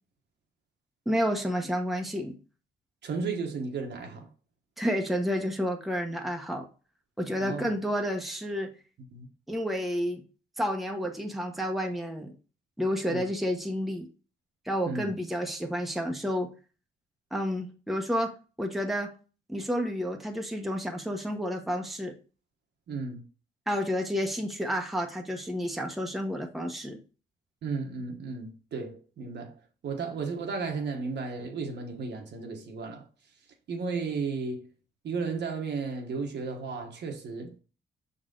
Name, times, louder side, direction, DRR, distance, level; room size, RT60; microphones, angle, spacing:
voice 1, 1.1-2.3 4.8-6.7 7.2-8.7 9.5-10.2 10.6-12.3 12.8-14.1 14.6-16.5 17.3-18.3 18.6-19.1 19.5-22.1 23.7-27.0, equal, ahead, 1.0 m, -30 dB
voice 2, 3.0-4.3 7.4-7.7 9.1-9.3 13.1-13.2 14.8-15.1 22.9-23.2 27.6-29.5 29.8-33.0 33.7-34.7 35.0-37.5, right 4 dB, 60° right, 1.3 m, -34 dB
6.0 x 4.1 x 3.8 m
cardioid pair, 90°, 20 cm